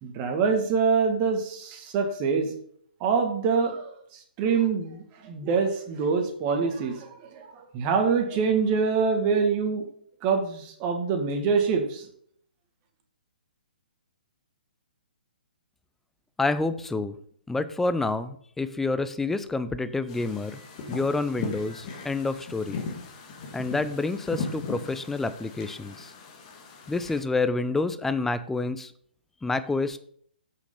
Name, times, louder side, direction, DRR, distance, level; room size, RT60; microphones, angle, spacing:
voice 1, 0.0-2.5 3.0-9.9 10.2-12.1, right 5 dB, 30° right, 4 dB, 1.9 m, -25 dB
voice 2, 16.4-17.2 17.5-20.6 20.9-22.8 23.5-26.1 26.9-28.9 29.4-30.0, left 3 dB, 5° left, 12 dB, 0.5 m, -28 dB
sound 1, 20.1-27.2, left 4 dB, 35° left, 2.0 m, -38 dB
8.2 x 6.4 x 5.4 m, 0.62 s
figure-of-eight pair, 125°, 5 cm